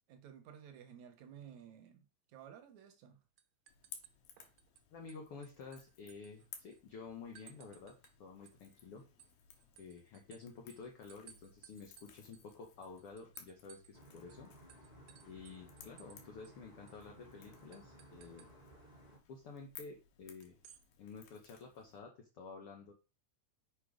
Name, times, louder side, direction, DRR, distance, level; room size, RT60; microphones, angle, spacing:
voice 1, 0.1-3.2, right 9 dB, 65° right, 2.1 m, -55 dB
sound 1, 2.8-3.1 3.4-4.8 5.1-6.8 7.4-8.2 8.5-14.0 14.3-14.4 14.7-16.2 16.4-16.5 16.9-17.0 17.7-18.5 20.4-20.8, right 10 dB, 85° right, 2.6 m, -62 dB
Crackle / Crack, 3.7-22.0, left 8 dB, 85° left, 3.0 m, -59 dB
voice 2, 4.9-9.0 9.8-14.5 15.3-18.5 19.3-20.6 21.0-22.9, left 4 dB, 60° left, 1.5 m, -51 dB
sound 2, 13.9-19.2, equal, 10° left, 2.2 m, -59 dB
6.6 x 5.5 x 5.0 m
omnidirectional pair, 4.1 m